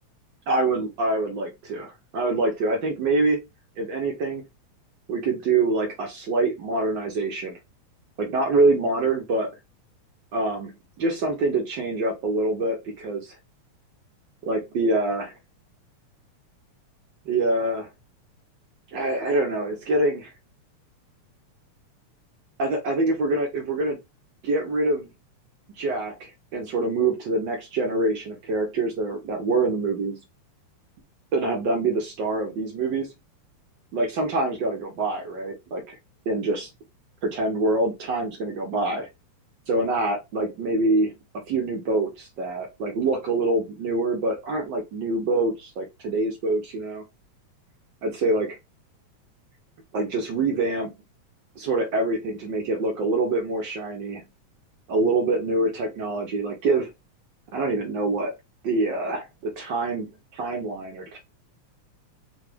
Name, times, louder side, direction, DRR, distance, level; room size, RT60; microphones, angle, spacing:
voice 1, 0.5-3.4 3.8-4.4 5.1-7.6 8.2-9.5 10.3-10.7 11.0-13.3 14.5-15.3 17.2-17.9 18.9-20.3 22.6-24.0 24.4-25.1 25.8-30.2 31.3-33.1 33.9-36.0 36.2-36.7 37.2-39.1 39.7-41.1 41.5-47.0 48.0-48.6 49.9-50.9 51.6-54.2 54.9-56.9 57.5-58.3 58.6-61.2, right 2 dB, 80° right, -1 dB, 1.0 m, -25 dB
4.8 x 2.3 x 3.3 m, 0.22 s
omnidirectional pair, 3.3 m